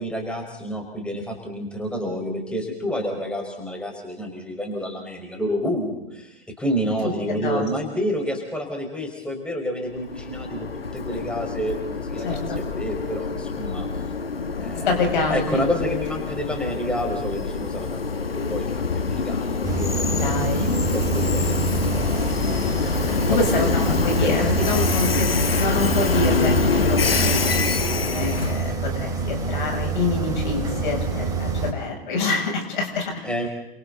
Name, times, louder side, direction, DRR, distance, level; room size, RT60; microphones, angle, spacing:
voice 1, 0.0-10.7 10.9-13.9 14.6-22.1 23.2-25.0 33.2-33.5, equal, 5° left, 1 dB, 5.3 m, -29 dB
voice 2, 7.0-7.6 12.2-12.6 14.6-15.6 20.2-20.6 23.1-25.3 25.6-27.5 27.9-33.5, left 3 dB, 60° left, 2 dB, 7.7 m, -26 dB
Train, 9.9-28.7, left 4 dB, 80° left, 1.4 m, -25 dB
sound 1, 19.6-31.7, right 3 dB, 10° right, 4.8 m, -27 dB
29.5 x 26.5 x 4.1 m, 0.88 s
figure-of-eight pair, 105°, 29 cm